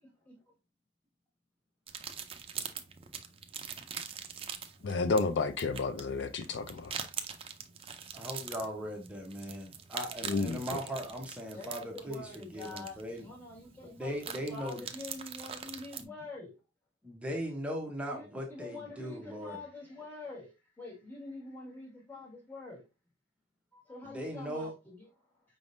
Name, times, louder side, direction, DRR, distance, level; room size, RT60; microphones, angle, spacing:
sound 1, 1.9-16.0, right 7 dB, 30° right, 0.5 m, -44 dB
voice 1, 4.8-6.9 10.3-10.6, left 4 dB, 80° left, 0.4 m, -31 dB
voice 2, 8.1-13.3 13.9-14.9 16.0-16.1 17.0-19.6 24.0-24.7, equal, 5° right, 0.8 m, -39 dB
voice 3, 11.5-14.1 14.5-16.5 18.1-22.8 23.7-25.0, left 2 dB, 10° left, 1.7 m, -46 dB
5.1 x 3.5 x 2.5 m
head